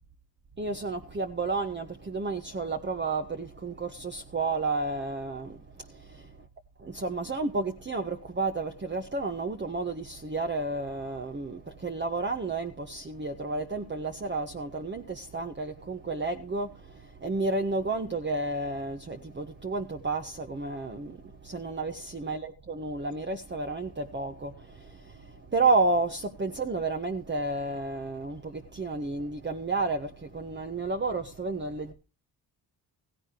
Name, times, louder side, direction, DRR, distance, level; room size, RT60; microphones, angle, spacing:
voice 1, 0.6-5.9 6.8-31.9, right 3 dB, 25° right, 1.3 m, -31 dB
15.5 x 15.5 x 3.0 m
cardioid pair, 70°, 47 cm